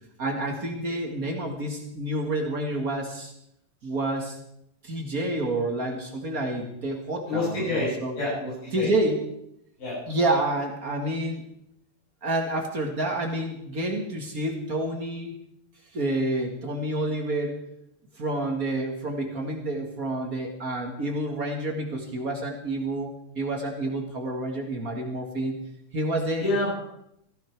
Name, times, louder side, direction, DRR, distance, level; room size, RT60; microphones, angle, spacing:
voice 1, 0.2-3.3 3.8-4.4 4.8-8.1 8.7-9.2 10.1-11.4 12.2-15.3 15.9-17.6 18.1-25.5 25.9-26.4, right 1 dB, 35° right, 2 dB, 1.5 m, -29 dB
voice 2, 7.3-7.9 8.2-8.9 9.8-10.0 26.3-26.8, left 2 dB, 75° left, -8 dB, 9.2 m, -28 dB
15.5 x 15.5 x 4.6 m, 0.78 s
omnidirectional pair, 3.9 m